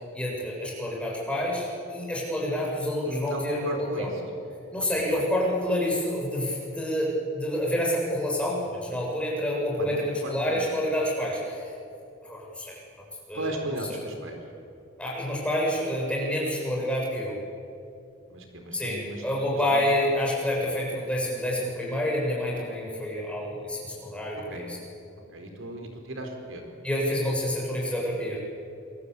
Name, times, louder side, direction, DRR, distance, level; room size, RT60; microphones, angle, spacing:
voice 1, 0.1-4.1 4.7-11.7 12.2-12.8 13.3-14.0 15.0-17.4 18.7-24.8 26.8-28.4, left 1 dB, 5° left, -3 dB, 7.6 m, -28 dB
voice 2, 3.0-4.1 4.7-5.2 9.8-10.6 13.3-14.4 18.3-19.2 19.7-19.8 24.5-24.6 25.3-26.6, right 1 dB, 85° right, 3 dB, 4.5 m, -36 dB
27.0 x 24.0 x 8.5 m, 2.6 s
head